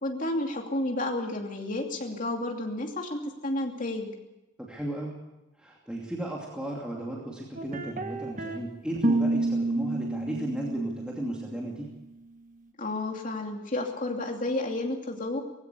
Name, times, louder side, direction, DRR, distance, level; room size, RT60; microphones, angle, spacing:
voice 1, 0.0-4.1 12.8-15.4, left 1 dB, 40° left, 2 dB, 2.7 m, -31 dB
voice 2, 4.6-5.1 5.6-11.9, right 1 dB, 5° right, -3 dB, 2.7 m, -35 dB
sound 1, 7.6-8.6 8.9-11.9, right 2 dB, 40° right, 1.5 m, -30 dB
19.5 x 16.0 x 8.4 m, 1.0 s
head